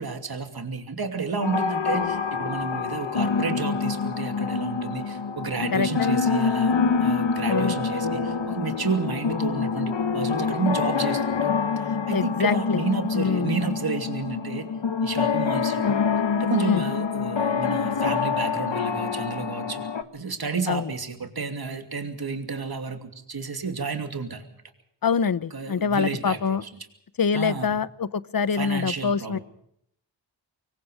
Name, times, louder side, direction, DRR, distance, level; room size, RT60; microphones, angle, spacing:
voice 1, 0.0-6.7 7.0-11.5 11.8-14.7 15.0-16.0 16.4-19.9 20.1-24.5 25.5-26.7 27.3-27.7 28.5-29.4, right 4 dB, 55° right, 6 dB, 2.8 m, -31 dB
sound 1, 1.4-20.0, left 5 dB, 75° left, 1.5 m, -26 dB
voice 2, 5.7-6.2 7.5-7.8 12.1-12.8 13.1-13.5 16.6-16.8 20.7-20.9 25.0-26.6 27.2-29.4, left 6 dB, 50° left, 17 dB, 0.9 m, -25 dB
25.5 x 22.5 x 5.0 m, 0.73 s
wide cardioid pair, 110°, 45 cm